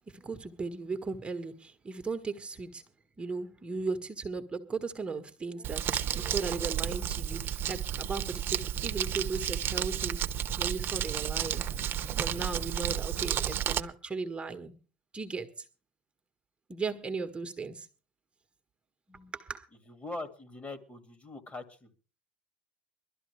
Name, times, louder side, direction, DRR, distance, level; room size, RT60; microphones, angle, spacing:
voice 1, 0.1-2.8 3.2-10.2 10.6-14.7 15.1-15.6 16.7-17.9 19.1-19.7, right 4 dB, 20° right, 1.5 m, -37 dB
Crumpling crinkling, 5.6-13.8, right 10 dB, 45° right, 1.0 m, -32 dB
voice 2, 19.9-21.9, left 2 dB, 25° left, 2.4 m, -42 dB
21.5 x 12.5 x 3.4 m
hypercardioid pair, 85°, 5 cm